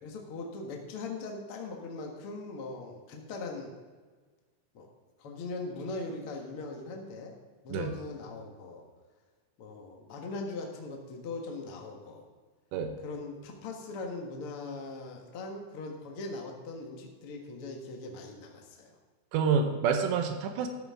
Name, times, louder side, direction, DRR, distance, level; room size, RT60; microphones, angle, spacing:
voice 1, 0.0-3.7 4.7-4.9 5.2-7.4 7.6-8.8 9.6-12.2 13.0-18.9, left 3 dB, 60° left, 1 dB, 1.4 m, -40 dB
voice 2, 19.3-20.7, right 6 dB, 90° right, 6 dB, 3.4 m, -28 dB
13.5 x 13.0 x 3.7 m, 1.4 s
omnidirectional pair, 4.9 m